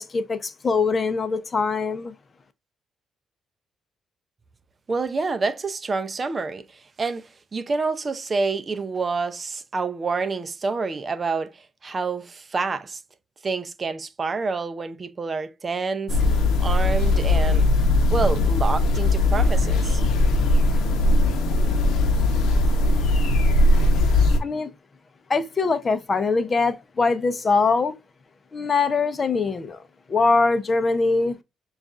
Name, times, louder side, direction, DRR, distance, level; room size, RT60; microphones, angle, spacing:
voice 1, 0.0-2.1 24.4-24.7 25.3-27.9 28.5-29.8 30.1-31.4, left 4 dB, 35° left, 0.6 m, -22 dB
voice 2, 4.9-13.0 13.4-17.7 18.1-20.0, right 4 dB, 35° right, 0.5 m, -28 dB
sound 1, 16.1-24.4, left 2 dB, 80° left, 0.7 m, -19 dB
6.4 x 2.4 x 2.4 m
cardioid pair, 90°, 0 cm